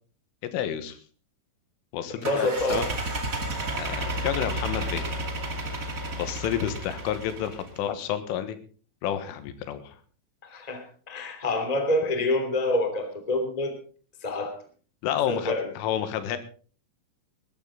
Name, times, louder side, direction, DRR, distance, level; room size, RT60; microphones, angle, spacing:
voice 1, 0.4-1.0 1.9-2.8 3.7-5.0 6.1-8.6 9.0-10.0 15.0-16.4, left 10 dB, 90° left, 10 dB, 3.9 m, -30 dB
voice 2, 2.1-2.9 10.4-13.7 14.2-14.6 15.3-15.7, left 1 dB, 15° left, 6 dB, 1.6 m, -27 dB
sound 1, 2.2-7.8, right 1 dB, 90° right, 0.7 m, -32 dB
20.0 x 14.0 x 3.9 m, 0.40 s
omnidirectional pair, 5.7 m